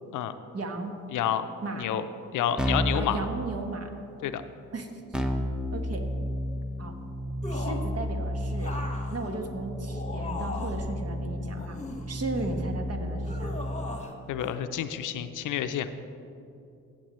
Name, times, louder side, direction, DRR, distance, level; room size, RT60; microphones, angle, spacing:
voice 1, 0.5-1.0 1.6-1.9 2.9-3.9 4.7-4.9 5.7-6.1 6.8-6.9 7.5-8.7 9.1-11.8 12.1-13.5, right 2 dB, 45° right, 5 dB, 1.3 m, -35 dB
voice 2, 1.1-1.5 1.7-2.0 2.3-3.2 4.2-4.4 14.3-15.9, left 10 dB, 65° left, 10 dB, 0.6 m, -29 dB
Keyboard (musical), 2.6-3.1 5.1-14.0, equal, ahead, 0.9 m, -32 dB
sound 1, 7.4-7.9 8.6-10.9 11.6-12.7 13.3-14.1 14.4-14.6, left 2 dB, 20° left, 1.4 m, -38 dB
15.5 x 7.2 x 3.1 m, 2.6 s
hypercardioid pair, 50°, 34 cm